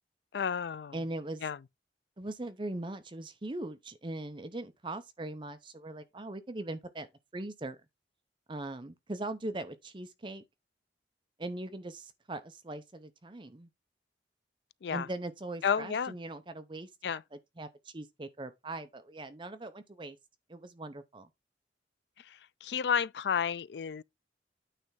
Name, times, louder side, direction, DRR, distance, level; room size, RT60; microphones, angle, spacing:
voice 1, 0.3-0.9 1.4-1.6 14.8-15.1 15.6-16.1 17.0-17.2 22.6-24.0, left 7 dB, 70° left, 0.4 m, -31 dB
voice 2, 0.9-1.5 2.2-7.1 7.3-7.8 8.5-10.4 11.4-13.7 14.9-20.2 20.5-21.3, right 2 dB, 30° right, 0.7 m, -40 dB
9.1 x 3.4 x 5.6 m
head